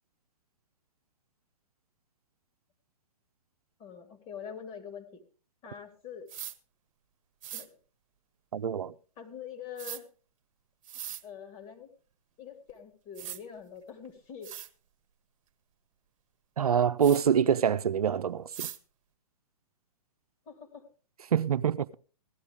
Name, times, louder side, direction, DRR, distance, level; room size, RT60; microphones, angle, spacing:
voice 1, 3.8-5.2 5.6-6.3 7.5-7.8 9.2-10.1 11.2-11.9 12.4-14.5 20.5-20.9, left 7 dB, 30° left, 2.5 m, -44 dB
sound 1, 6.3-6.6 7.4-7.7 9.8-10.0 10.8-11.2 12.7-12.8 13.1-13.4 14.0-14.1 14.4-14.7 17.0-17.2 18.5-18.8, right 10 dB, 60° right, 1.0 m, -40 dB
voice 2, 8.5-8.9 16.6-18.7 21.3-21.9, right 8 dB, 80° right, 0.6 m, -25 dB
16.0 x 11.5 x 3.5 m
hypercardioid pair, 125°, 19 cm